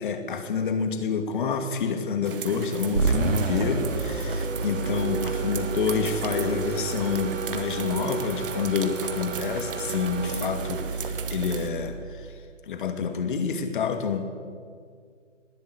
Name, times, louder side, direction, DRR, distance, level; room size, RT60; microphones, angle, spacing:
voice 1, 0.0-12.4 12.7-14.3, left 6 dB, 40° left, 8 dB, 2.6 m, -28 dB
sound 1, 2.2-11.7, right 7 dB, 45° right, 2.1 m, -38 dB
sound 2, 2.9-12.3, right 4 dB, 85° right, 2.7 m, -30 dB
19.5 x 18.0 x 9.9 m, 2.1 s
figure-of-eight pair, 150°, 38 cm